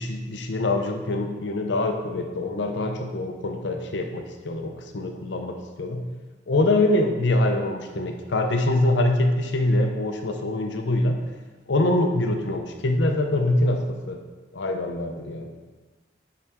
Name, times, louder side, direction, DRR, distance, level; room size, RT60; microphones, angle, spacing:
voice 1, 0.0-6.0 6.5-11.2 11.7-14.2 14.5-15.7, left 2 dB, 75° left, 4 dB, 0.7 m, -24 dB
7.1 x 4.9 x 3.6 m, 1.3 s
head